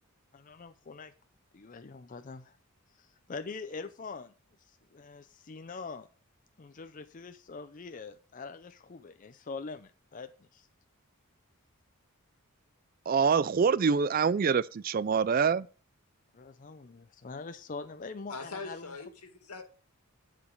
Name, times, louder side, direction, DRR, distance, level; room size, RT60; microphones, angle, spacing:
voice 1, 0.3-1.1 1.5-2.6 2.9-4.3 4.7-6.1 6.6-10.7 16.3-18.9, left 4 dB, 35° left, 0.5 m, -43 dB
voice 2, 13.1-15.7, right 6 dB, 40° right, 0.3 m, -25 dB
voice 3, 18.3-19.6, left 3 dB, 85° left, 2.1 m, -42 dB
11.5 x 5.1 x 5.3 m
head